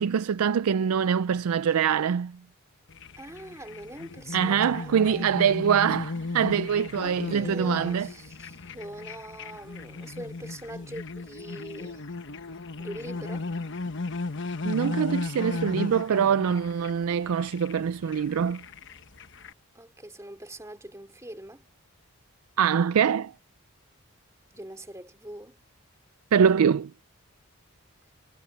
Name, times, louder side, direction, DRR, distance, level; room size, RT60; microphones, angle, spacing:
voice 1, 0.0-2.4 4.3-8.1 14.7-18.6 22.6-23.3 26.3-26.9, right 7 dB, 75° right, 0.4 m, -24 dB
sound 1, 2.9-19.5, left 3 dB, 55° left, 1.1 m, -36 dB
voice 2, 3.2-5.3 7.0-12.0 12.8-13.5 19.7-21.6 24.5-25.6, right 1 dB, 15° right, 2.7 m, -42 dB
head